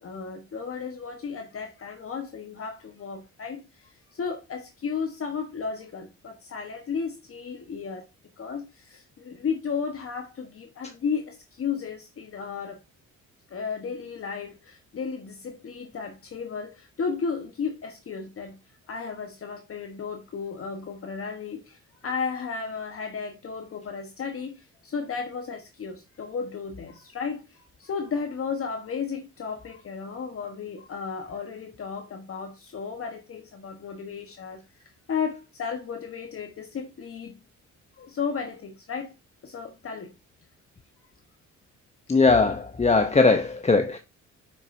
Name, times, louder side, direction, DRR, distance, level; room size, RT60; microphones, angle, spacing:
voice 1, 0.0-8.0 8.4-12.8 13.5-18.6 18.9-37.4 38.0-39.1 39.4-40.1, left 6 dB, 45° left, 1.2 m, -34 dB
voice 2, 42.1-44.0, left 3 dB, 20° left, 0.7 m, -20 dB
7.6 x 6.3 x 2.7 m
cardioid pair, 90°, 30 cm